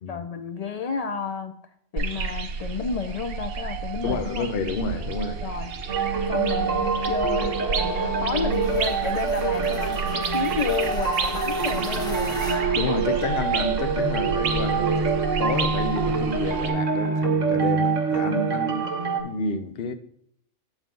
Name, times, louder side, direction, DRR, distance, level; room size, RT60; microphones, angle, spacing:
voice 1, 0.1-1.6 1.9-4.5 5.4-5.7 6.3-12.4, left 6 dB, 75° left, 0.3 m, -31 dB
sound 1, 2.0-16.7, right 5 dB, 55° right, 0.9 m, -31 dB
voice 2, 4.0-5.4 12.7-18.9 19.2-19.9, left 3 dB, 55° left, 0.9 m, -29 dB
sound 2, 5.9-19.2, right 5 dB, 75° right, 1.7 m, -25 dB
sound 3, 8.5-13.7, equal, 5° left, 0.9 m, -39 dB
8.1 x 7.2 x 3.8 m
omnidirectional pair, 1.3 m